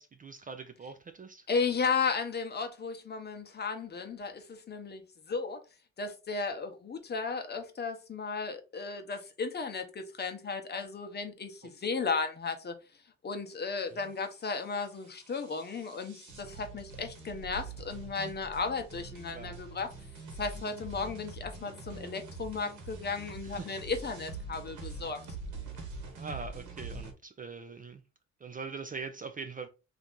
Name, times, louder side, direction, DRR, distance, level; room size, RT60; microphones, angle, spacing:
voice 1, 0.0-1.5 11.6-11.7 13.9-14.1 19.3-19.5 23.4-23.7 24.7-24.9 26.2-28.0 28.4-29.7, right 4 dB, 30° right, 0.4 m, -42 dB
voice 2, 1.5-5.0 5.3-5.6 6.0-12.7 13.2-19.9 20.4-25.2, left 4 dB, 35° left, 0.7 m, -34 dB
sound 1, 13.9-27.1, right 3 dB, 75° right, 1.2 m, -45 dB
2.8 x 2.5 x 3.6 m
cardioid pair, 90°, 30 cm